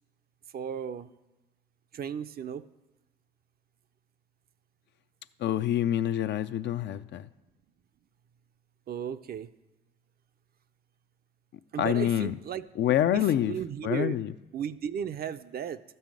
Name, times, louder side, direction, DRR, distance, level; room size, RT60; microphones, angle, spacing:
voice 1, 0.5-1.1 1.9-2.6 8.9-9.5 11.7-12.6 13.1-14.2 14.5-15.8, right 8 dB, 50° right, 0.5 m, -35 dB
voice 2, 5.4-7.3 11.8-12.3 12.8-13.6 13.8-14.3, left 11 dB, 60° left, 0.4 m, -26 dB
12.5 x 5.5 x 7.5 m
supercardioid pair, 75°, 20 cm